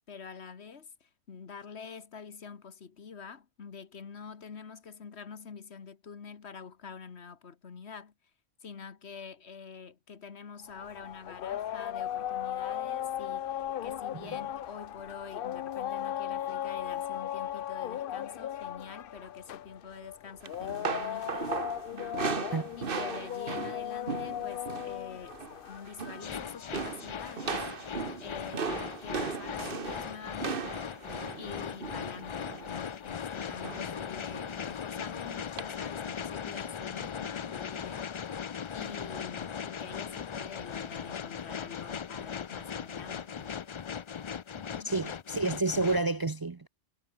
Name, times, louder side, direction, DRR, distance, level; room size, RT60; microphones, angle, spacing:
voice 1, 0.1-8.1 8.6-21.5 21.9-22.4 22.8-27.6 28.2-30.9 31.4-38.1 38.7-43.7 44.5-45.0, left 6 dB, 85° left, 1.7 m, -46 dB
sound 1, 10.7-27.0, left 11 dB, 65° left, 0.7 m, -37 dB
sound 2, 20.4-25.0 25.2-25.6 25.9-26.4 26.7-32.8 33.6-34.0 34.3-34.5 35.6-35.7, right 5 dB, 60° right, 1.4 m, -37 dB
sound 3, 26.2-46.0, left 7 dB, 45° left, 0.4 m, -39 dB
voice 2, 44.8-46.7, right 2 dB, 30° right, 0.4 m, -30 dB
omnidirectional pair, 1.1 m